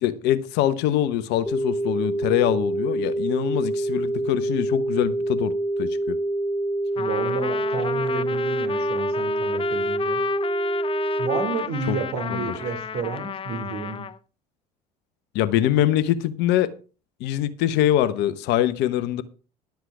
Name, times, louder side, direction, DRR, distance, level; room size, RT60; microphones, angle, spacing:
voice 1, 0.0-5.5 5.8-6.2 11.9-12.0 12.3-12.5 15.3-16.7 17.2-19.2, left 12 dB, 60° left, 1.1 m, -23 dB
sound 1, 1.5-11.5, right 1 dB, 5° left, 2.4 m, -26 dB
voice 2, 6.9-10.2 11.2-14.0, right 5 dB, 50° right, 3.2 m, -31 dB
Trumpet, 7.0-14.2, left 7 dB, 25° left, 0.7 m, -32 dB
12.0 x 8.0 x 4.8 m
hypercardioid pair, 65°, 20 cm